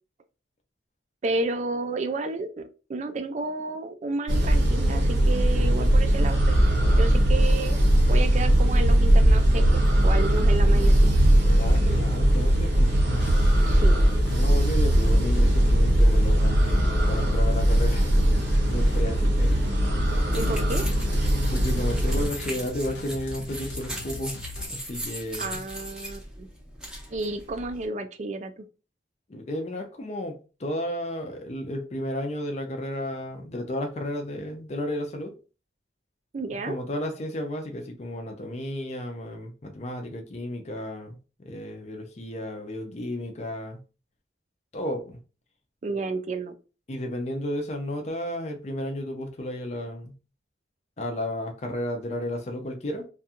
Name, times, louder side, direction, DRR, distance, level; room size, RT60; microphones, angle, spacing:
voice 1, 1.2-7.8 8.1-11.1 13.7-14.0 20.3-20.9 25.4-26.5 27.1-28.7 36.3-36.7 45.8-46.5, right 3 dB, 40° right, 0.3 m, -31 dB
sound 1, 4.3-22.3, right 1 dB, 85° right, 0.8 m, -20 dB
sound 2, 10.0-24.7, left 2 dB, 75° left, 0.7 m, -39 dB
voice 2, 11.5-12.9 14.3-16.8 17.1-18.4 18.7-19.6 21.4-24.4 24.7-25.6 29.3-35.3 36.7-43.8 44.7-45.2 46.9-50.1 51.0-53.1, left 1 dB, 35° left, 0.5 m, -33 dB
sound 3, 20.3-27.9, equal, 5° right, 0.6 m, -38 dB
2.5 x 2.3 x 2.8 m
head